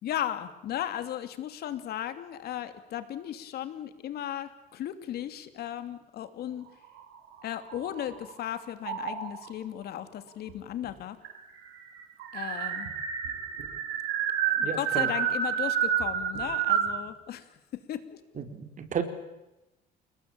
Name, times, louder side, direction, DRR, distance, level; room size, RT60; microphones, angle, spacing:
voice 1, 0.0-6.7 7.4-11.2 12.3-12.9 14.5-17.5 17.7-18.2, left 11 dB, 70° left, 10 dB, 2.8 m, -36 dB
sound 1, 6.8-8.3 8.8-9.5 10.5-10.6 10.8-10.9 11.2-17.0, right 8 dB, 85° right, 7.2 m, -30 dB
voice 2, 14.6-15.1 18.4-19.0, right 7 dB, 50° right, 7 dB, 4.1 m, -33 dB
29.5 x 19.5 x 8.9 m, 0.97 s
cardioid pair, 110°, 17 cm